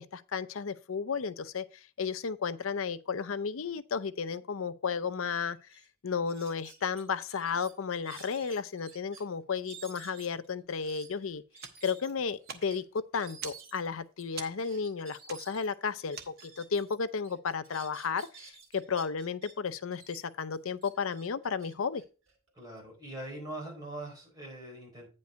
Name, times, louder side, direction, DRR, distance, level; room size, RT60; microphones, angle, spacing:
voice 1, 0.0-1.6 2.0-5.6 6.0-11.4 11.8-12.8 13.1-18.5 18.7-22.0, left 5 dB, 75° left, 0.6 m, -33 dB
sound 1, 5.3-5.4 5.7-5.9 6.3-9.2 9.6-16.9 17.2-19.5 19.9-22.8, right 5 dB, 70° right, 2.6 m, -52 dB
sound 2, 11.5-16.8, right 6 dB, 50° right, 1.0 m, -47 dB
voice 2, 22.5-25.1, right 1 dB, 20° right, 4.8 m, -42 dB
9.3 x 5.4 x 4.4 m
head